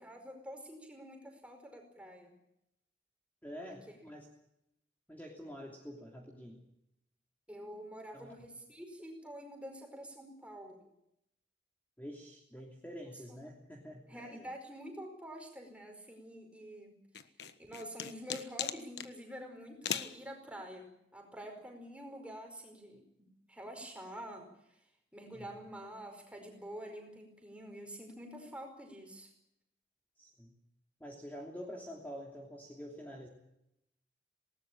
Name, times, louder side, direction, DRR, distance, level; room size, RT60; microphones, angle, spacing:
voice 1, 0.0-2.3 7.5-10.8 14.1-17.0 17.6-24.8 25.1-29.3, equal, 5° right, 4 dB, 4.9 m, -47 dB
voice 2, 3.4-4.3 5.1-6.6 8.1-8.3 12.0-14.5 25.3-25.5 30.2-30.5 31.0-33.3, equal, 10° left, -1 dB, 3.0 m, -47 dB
sound 1, 17.1-19.1 19.8-20.2, left 8 dB, 70° left, 1.3 m, -38 dB
20.0 x 18.5 x 8.8 m, 0.81 s
head